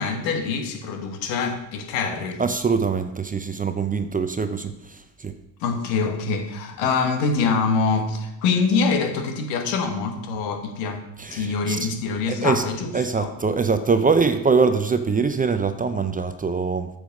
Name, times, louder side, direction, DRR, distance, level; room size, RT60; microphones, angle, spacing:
voice 1, 0.0-2.4 5.6-11.0 11.3-13.3, left 4 dB, 70° left, 5 dB, 1.5 m, -25 dB
voice 2, 2.4-5.3 11.2-11.9 12.3-12.6 12.9-16.9, right 4 dB, 15° right, 9 dB, 0.6 m, -23 dB
8.4 x 6.3 x 5.3 m, 0.92 s
hypercardioid pair, 65°, 48 cm